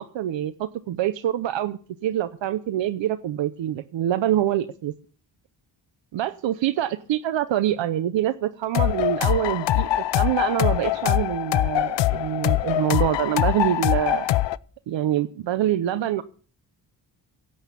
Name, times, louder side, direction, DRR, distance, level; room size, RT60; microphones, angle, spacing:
voice 1, 0.0-4.9 6.1-9.9 10.1-14.3 14.9-16.2, right 11 dB, 90° right, 12 dB, 0.8 m, -25 dB
sound 1, 8.7-14.6, left 15 dB, 75° left, 0.6 m, -23 dB
17.0 x 7.9 x 7.0 m, 0.42 s
wide cardioid pair, 125°, 43 cm